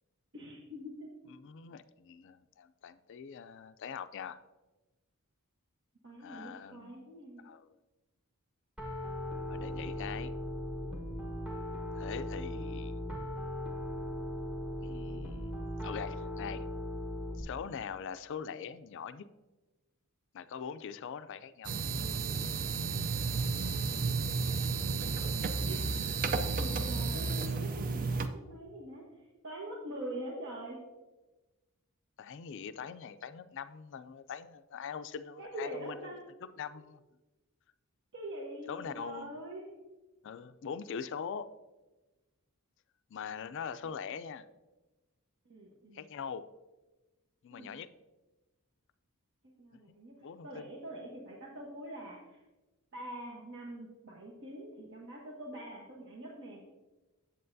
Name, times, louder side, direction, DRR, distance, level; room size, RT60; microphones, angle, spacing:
voice 1, 0.3-1.1 6.0-7.5 25.6-25.8 26.6-30.8 35.4-36.2 38.1-39.8 45.4-46.0 47.5-47.8 49.6-50.1 50.4-52.4 52.9-56.6, right 1 dB, 55° right, -3 dB, 1.1 m, -44 dB
voice 2, 1.3-4.4 6.2-7.1 7.4-7.7 9.5-10.3 12.0-13.0 14.8-15.5 15.8-16.6 17.4-19.3 20.3-21.7 32.2-37.0 38.7-39.4 40.2-41.5 43.1-44.5 45.9-46.5 47.4-47.9 50.2-50.7, left 7 dB, 55° left, 12 dB, 0.3 m, -42 dB
Piano, 8.8-17.4, left 1 dB, 5° right, 1.0 m, -38 dB
sound 1, 21.6-28.3, right 4 dB, 40° right, 0.4 m, -32 dB
7.7 x 7.7 x 2.6 m, 1.1 s
head